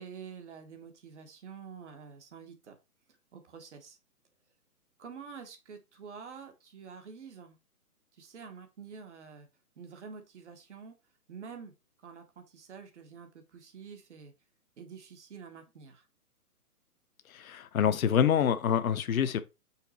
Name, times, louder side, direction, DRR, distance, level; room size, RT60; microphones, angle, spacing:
voice 1, 0.0-2.8 3.3-4.0 5.0-7.6 8.2-9.5 9.8-10.9 11.3-11.7 12.0-14.3 14.8-16.0, right 6 dB, 50° right, 1.3 m, -47 dB
voice 2, 17.3-19.4, left 8 dB, 60° left, 0.8 m, -26 dB
5.7 x 4.0 x 4.1 m
hypercardioid pair, 155°, 46 cm